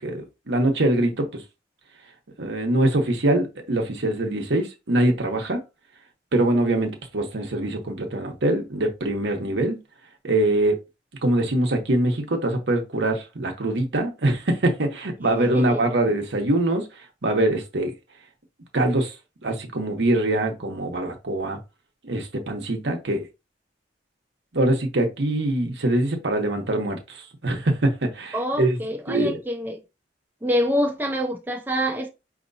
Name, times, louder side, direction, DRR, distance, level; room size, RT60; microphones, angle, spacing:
voice 1, 0.0-1.4 2.4-5.6 6.3-9.8 10.2-10.8 11.2-16.9 17.2-17.9 18.7-19.1 19.4-21.6 22.0-23.3 24.5-28.8 29.1-29.4, right 1 dB, 75° right, 1.0 m, -23 dB
voice 2, 15.4-15.8 28.3-29.8 30.4-32.1, equal, 10° right, 0.6 m, -26 dB
5.0 x 2.9 x 2.7 m
head